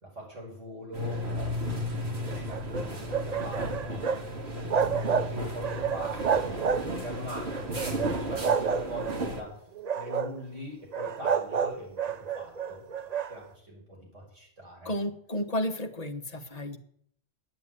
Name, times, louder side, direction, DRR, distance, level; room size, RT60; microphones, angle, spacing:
voice 1, 0.0-1.2 1.9-9.6 9.9-14.9, equal, 80° right, -2 dB, 6.4 m, -42 dB
sound 1, 0.9-9.4, equal, 60° right, 2.4 m, -34 dB
sound 2, 2.3-4.3 4.5-5.3 5.6-7.1 7.5-9.2 9.8-10.4 10.9-13.3, right 6 dB, 45° right, 0.6 m, -29 dB
voice 2, 14.8-16.8, left 1 dB, 35° left, 6 dB, 1.3 m, -32 dB
10.0 x 9.2 x 9.8 m, 0.66 s
omnidirectional pair, 1.2 m